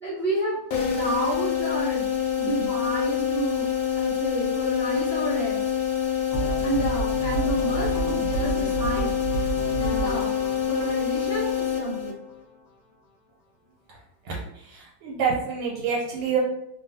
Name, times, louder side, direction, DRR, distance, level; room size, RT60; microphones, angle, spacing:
voice 1, 0.0-2.1 2.4-3.7 4.0-5.7 6.6-9.2 9.7-10.3 10.7-12.1, right 2 dB, 65° right, -10 dB, 0.4 m, -30 dB
sound 1, 0.7-12.4, left 9 dB, 80° left, 1.3 m, -26 dB
sound 2, 6.3-12.3, right 4 dB, 30° left, 0.8 m, -31 dB
voice 2, 14.6-16.4, right 6 dB, 80° right, -5 dB, 1.5 m, -27 dB
3.2 x 2.3 x 2.6 m, 0.80 s
omnidirectional pair, 2.1 m